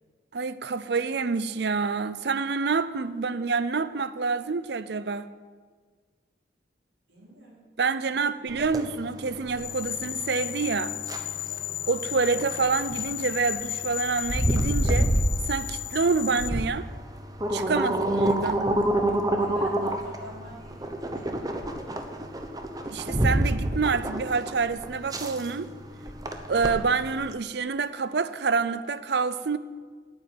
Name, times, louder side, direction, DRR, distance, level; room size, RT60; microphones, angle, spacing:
voice 1, 0.3-5.3 7.8-11.0 11.9-15.1 15.5-16.9 17.5-18.7 22.8-25.7 26.5-29.6, right 4 dB, 65° right, 0.5 m, -27 dB
voice 2, 7.1-7.6 8.1-8.2 11.5-11.7 17.7-18.0 19.4-22.0, right 1 dB, 85° right, 4.6 m, -47 dB
sound 1, 8.5-27.3, right 1 dB, 20° right, 0.9 m, -28 dB
sound 2, 9.6-16.5, left 16 dB, 45° left, 0.4 m, -34 dB
8.8 x 8.7 x 9.4 m
head